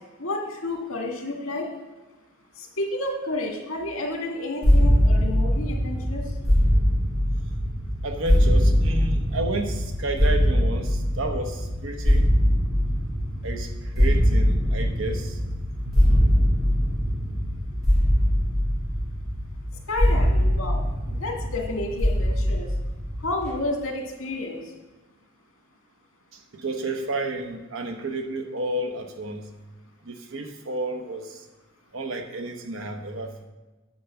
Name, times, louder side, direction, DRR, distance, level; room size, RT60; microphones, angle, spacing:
voice 1, 0.2-1.7 2.6-6.2 19.9-22.7 23.2-24.6, left 2 dB, 80° left, 1 dB, 1.9 m, -30 dB
sound 1, 4.6-23.5, equal, ahead, 3.2 m, -22 dB
voice 2, 8.0-12.2 13.4-15.4 15.8-16.0 26.5-29.5 30.0-31.4 31.9-33.4, right 2 dB, 70° right, 5 dB, 1.1 m, -31 dB
9.3 x 4.5 x 7.0 m, 1.2 s
head